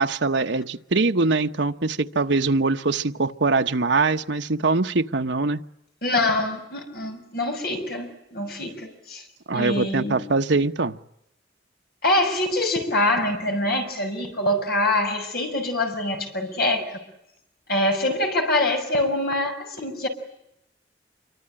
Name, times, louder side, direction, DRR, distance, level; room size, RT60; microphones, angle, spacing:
voice 1, 0.0-5.6 9.5-11.0, right 3 dB, 80° right, 7 dB, 1.0 m, -23 dB
voice 2, 6.0-9.2 9.5-10.2 12.0-16.9 17.7-20.1, left 1 dB, 55° left, 4 dB, 6.3 m, -24 dB
27.0 x 24.0 x 8.8 m, 0.82 s
head